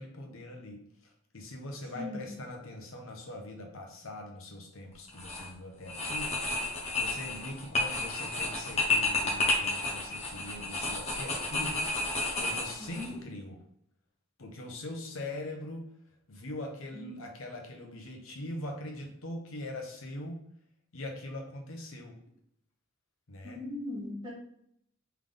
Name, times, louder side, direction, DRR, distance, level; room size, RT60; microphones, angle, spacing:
voice 1, 0.0-6.7 6.9-13.6 14.4-20.4 20.9-22.2 23.3-23.6, left 1 dB, 85° left, 2 dB, 0.9 m, -42 dB
voice 2, 1.9-2.3 12.8-13.2 16.9-17.1 23.4-24.3, left 2 dB, 20° right, -6 dB, 1.5 m, -39 dB
sound 1, 5.1-5.5 5.9-13.1, left 2 dB, 30° left, 1.0 m, -31 dB
3.8 x 3.4 x 3.5 m, 0.71 s
head